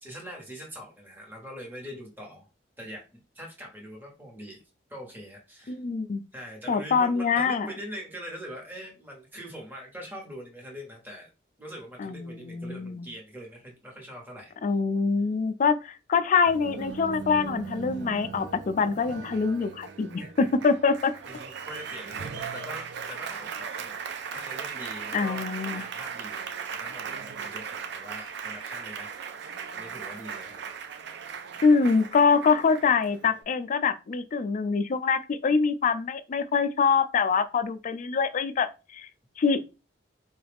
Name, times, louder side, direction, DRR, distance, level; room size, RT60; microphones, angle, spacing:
voice 1, 0.0-2.5 2.8-4.6 4.9-5.8 6.3-11.3 11.6-14.5 20.2-20.3 21.2-23.9 24.3-25.5 25.7-29.3 29.7-30.6 31.8-32.0, equal, 10° right, 1.0 m, -43 dB
voice 2, 5.7-6.2 6.7-7.7 12.0-13.1 14.6-21.1 25.1-25.8 31.6-39.1 39.4-39.6, left 5 dB, 45° left, 0.4 m, -24 dB
Applause, 16.5-33.4, right 6 dB, 65° right, 0.4 m, -38 dB
3.9 x 2.3 x 3.4 m
head